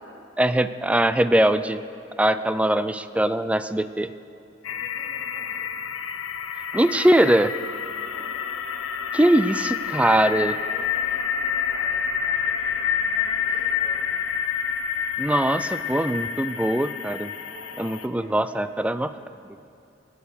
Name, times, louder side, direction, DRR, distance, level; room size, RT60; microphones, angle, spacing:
voice 1, 0.4-1.8 2.2-4.1 6.7-7.5 9.1-10.6 15.2-17.3 17.8-19.1, right 1 dB, 5° right, 12 dB, 0.3 m, -21 dB
voice 2, 2.1-2.6 3.8-3.9 4.7-5.6 6.7-7.0 7.8-8.5 9.2-9.7 10.6-14.1 17.4-19.3, equal, 50° right, -6 dB, 4.2 m, -48 dB
sound 1, 4.6-18.1, left 7 dB, 85° left, 0.6 m, -28 dB
18.5 x 8.8 x 6.7 m, 2.5 s
head